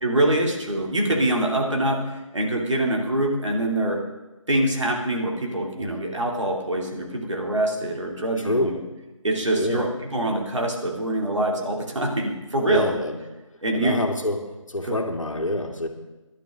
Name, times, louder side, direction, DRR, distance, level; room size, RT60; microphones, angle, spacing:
voice 1, 0.0-2.0 2.3-4.0 4.5-8.8 9.2-13.0 13.6-14.0 14.9-15.0, right 1 dB, 60° right, 0 dB, 2.8 m, -24 dB
voice 2, 8.4-8.8 9.5-9.8 12.7-13.2 13.7-14.4 14.7-15.9, left 1 dB, 70° left, 4 dB, 2.0 m, -26 dB
16.5 x 11.5 x 3.8 m, 1.1 s
figure-of-eight pair, 165°, 17 cm